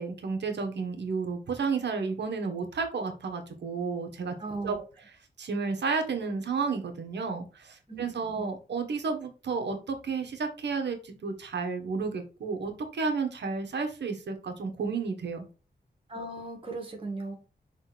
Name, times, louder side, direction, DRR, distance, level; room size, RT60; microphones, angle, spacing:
voice 1, 0.0-4.3 4.6-4.8 5.4-15.5, right 4 dB, 85° right, 5 dB, 1.6 m, -32 dB
voice 2, 4.4-4.8 7.9-8.5 16.1-17.4, right 2 dB, 30° right, 1 dB, 2.2 m, -37 dB
6.2 x 3.8 x 5.2 m, 0.33 s
wide cardioid pair, 175°, 17 cm